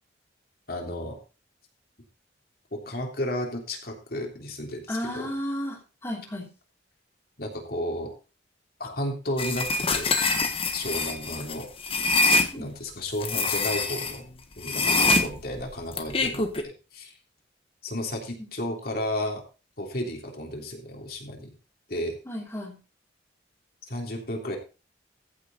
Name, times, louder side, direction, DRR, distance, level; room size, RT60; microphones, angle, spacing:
voice 1, 0.7-1.2 2.7-5.3 7.4-8.1 8.8-10.1 10.7-11.7 12.5-14.2 14.6-17.1 17.8-19.4 19.8-21.5 21.9-22.2 23.9-24.6, left 1 dB, 55° left, 2 dB, 3.3 m, -33 dB
voice 2, 4.9-6.5 12.5-12.7 15.0-15.2 22.2-22.8, equal, 15° left, -5 dB, 3.1 m, -33 dB
sound 1, 9.4-12.5 13.2-14.1 14.6-16.6, left 3 dB, 30° left, 1.4 m, -24 dB
15.0 x 6.8 x 4.2 m, 0.32 s
head